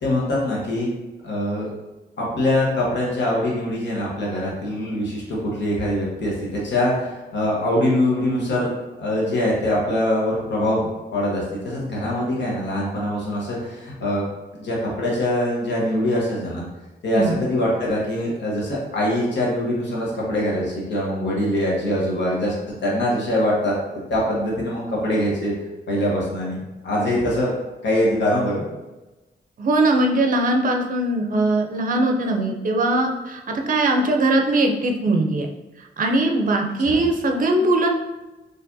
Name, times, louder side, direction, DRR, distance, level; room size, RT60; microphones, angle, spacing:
voice 1, 0.0-0.9 1.2-1.7 2.2-8.7 9.0-14.2 14.5-16.6 17.0-22.5 22.8-23.7 24.1-25.5 25.9-27.5 27.8-28.6 36.9-37.0, left 1 dB, 90° left, -5 dB, 1.2 m, -23 dB
voice 2, 29.6-35.5 36.0-37.9, right 2 dB, 50° right, 2 dB, 0.5 m, -20 dB
4.5 x 3.3 x 2.7 m, 1.1 s
wide cardioid pair, 180°, 18 cm